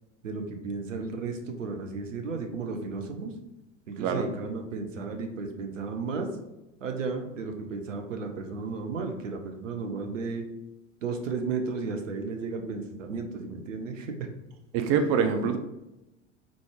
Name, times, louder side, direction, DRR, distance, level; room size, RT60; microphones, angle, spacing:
voice 1, 0.2-3.3 3.9-6.3 6.8-10.4 11.0-14.3 14.9-15.0, right 4 dB, 75° right, 4 dB, 0.7 m, -34 dB
voice 2, 14.7-15.6, right 6 dB, 40° right, 7 dB, 0.4 m, -25 dB
3.8 x 3.1 x 3.5 m, 0.95 s
figure-of-eight pair, 75°, 39 cm